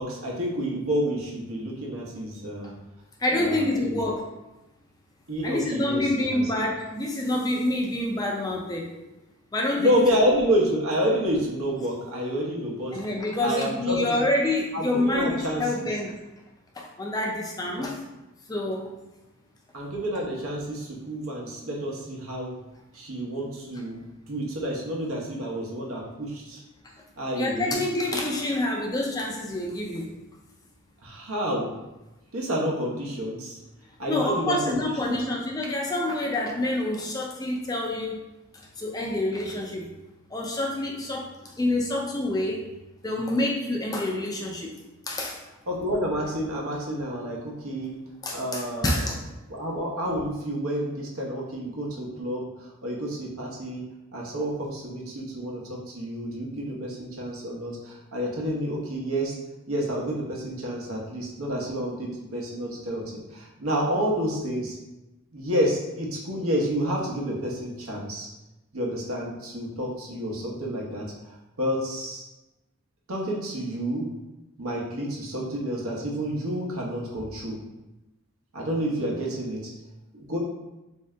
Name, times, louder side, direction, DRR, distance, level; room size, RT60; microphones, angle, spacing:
voice 1, 0.0-2.7 3.3-4.0 5.3-6.0 6.3-6.4 9.8-13.0 13.4-14.2 14.7-15.9 17.8-17.9 19.7-22.5 22.9-26.6 27.2-27.8 31.0-31.7 32.3-33.6 34.0-35.1 45.7-47.9 48.3-49.0 49.5-53.8 54.1-59.4 59.7-64.8 65.3-68.3 68.7-71.1 71.6-72.3 73.1-74.1 74.6-77.6 78.5-79.7 80.1-80.4, equal, 85° right, -2 dB, 0.9 m, -29 dB
voice 2, 3.2-4.2 5.4-8.9 9.5-10.4 12.9-16.1 16.7-18.0 18.5-18.9 27.3-30.1 34.1-38.2 38.8-39.9 40.3-42.7 43.0-44.7 45.1-45.4 48.2-49.2, left 1 dB, 15° left, 0 dB, 0.3 m, -27 dB
3.6 x 2.7 x 3.2 m, 1.0 s
head